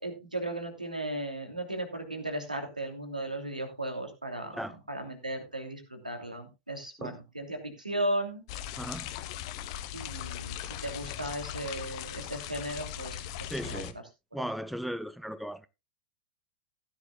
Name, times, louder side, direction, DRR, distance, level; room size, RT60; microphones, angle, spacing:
voice 1, 0.0-4.6 4.9-8.4 9.9-13.9 14.4-14.5, right 1 dB, 85° right, 2.9 m, -36 dB
sound 1, 8.5-13.9, left 11 dB, 45° left, 1.0 m, -39 dB
voice 2, 8.8-9.1 13.5-14.0 14.3-15.7, equal, ahead, 0.5 m, -36 dB
16.0 x 10.5 x 2.3 m
figure-of-eight pair, 95°, 4 cm